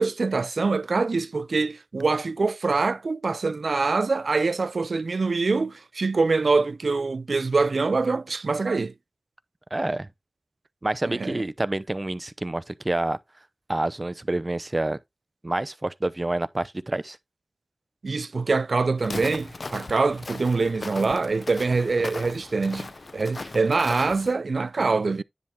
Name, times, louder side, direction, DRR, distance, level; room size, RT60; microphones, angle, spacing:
voice 1, 0.0-8.9 11.1-11.4 18.0-25.2, right 3 dB, 90° right, 0.4 m, -24 dB
voice 2, 9.7-10.1 10.8-13.2 13.7-15.0 15.4-17.2, right 2 dB, 35° right, 0.6 m, -28 dB
Walk footsteps, 19.0-24.3, left 3 dB, 70° left, 0.7 m, -38 dB
10.0 x 3.5 x 4.3 m
wide cardioid pair, 60°, 0 cm